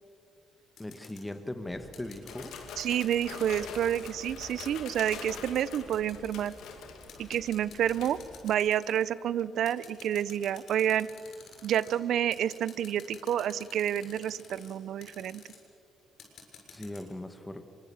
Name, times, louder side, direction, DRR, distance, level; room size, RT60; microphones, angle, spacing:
sound 1, 0.8-1.2 1.9-4.1 4.6-6.7 7.1-9.1 9.7-12.0 12.3-14.7 15.0-15.6 16.2-17.0, left 6 dB, 70° left, 7.4 m, -51 dB
voice 1, 0.8-2.6 16.7-17.6, left 1 dB, 10° left, 8 dB, 1.8 m, -39 dB
sound 2, 1.7-8.4, right 2 dB, 45° right, 7.2 m, -53 dB
sound 3, 2.3-9.0 9.4-9.7 10.4-10.9 13.1-14.7 15.0-15.1, left 7 dB, 85° left, 2.4 m, -46 dB
voice 2, 2.8-6.5 7.2-8.2 8.4-11.1 11.6-15.4, right 10 dB, 75° right, 19 dB, 0.7 m, -29 dB
24.5 x 23.5 x 7.2 m, 2.6 s
cardioid pair, 90°, 0 cm